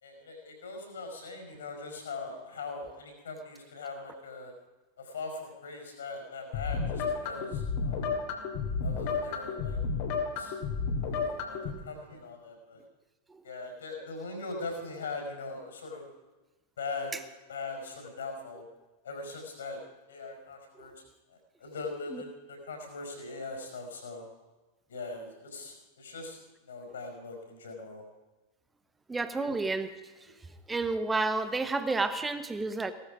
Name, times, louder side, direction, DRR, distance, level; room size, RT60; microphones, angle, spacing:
voice 1, 0.0-4.5 5.0-8.1 8.8-9.8 10.4-10.6 11.1-12.8 13.4-16.1 16.8-17.1 17.5-18.6 19.0-19.8 20.1-24.3 24.9-28.0 30.3-30.4, left 3 dB, 65° left, 4 dB, 4.9 m, -41 dB
sound 1, 6.5-11.7, left 5 dB, 50° left, 2.6 m, -32 dB
voice 2, 29.1-29.9 30.2-30.3 30.7-32.9, right 3 dB, 10° right, 11 dB, 1.2 m, -30 dB
17.5 x 13.5 x 5.1 m, 1.2 s
figure-of-eight pair, 90°, 0 cm